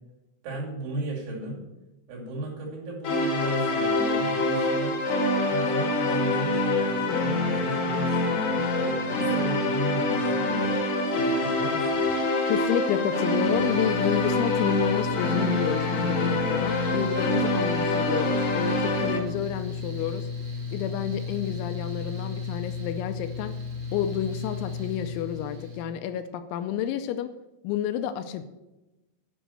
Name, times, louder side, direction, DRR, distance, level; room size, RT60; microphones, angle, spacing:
voice 1, 0.4-1.6 2.1-5.0 5.5-10.7 11.1-12.2, right 2 dB, 70° right, -3 dB, 4.9 m, -34 dB
sound 1, 3.0-19.2, left 2 dB, 65° left, 1.8 m, -25 dB
voice 2, 12.5-20.3 20.7-23.5 23.9-27.3 27.6-28.4, left 10 dB, 80° left, 9 dB, 2.9 m, -30 dB
Mechanical fan, 13.3-25.8, left 5 dB, 55° right, 2.1 m, -34 dB
10.0 x 5.8 x 7.6 m, 1.0 s
omnidirectional pair, 5.6 m